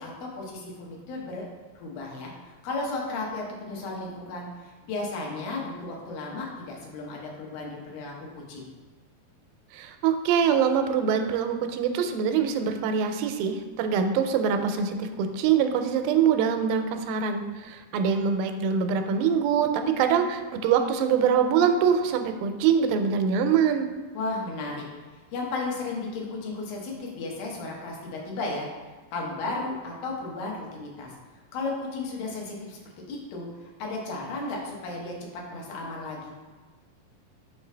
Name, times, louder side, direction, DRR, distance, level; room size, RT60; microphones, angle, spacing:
voice 1, 0.0-1.5 1.8-8.7 24.1-24.9 25.1-28.7 29.1-32.8 33.1-36.3, left 3 dB, 85° left, -2 dB, 2.9 m, -34 dB
voice 2, 9.7-23.9, right 7 dB, 90° right, 7 dB, 2.3 m, -24 dB
6.0 x 4.9 x 3.3 m, 1.4 s
omnidirectional pair, 4.1 m